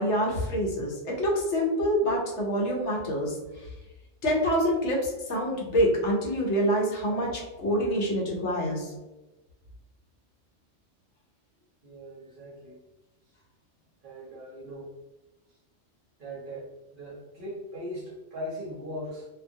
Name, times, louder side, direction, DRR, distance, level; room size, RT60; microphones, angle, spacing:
voice 1, 0.0-3.7 4.2-8.9, equal, 70° left, -2 dB, 1.0 m, -26 dB
voice 2, 11.8-12.8 14.0-14.9 16.2-19.3, equal, 50° right, -5 dB, 0.7 m, -39 dB
2.4 x 2.4 x 2.6 m, 1.1 s
omnidirectional pair, 1.3 m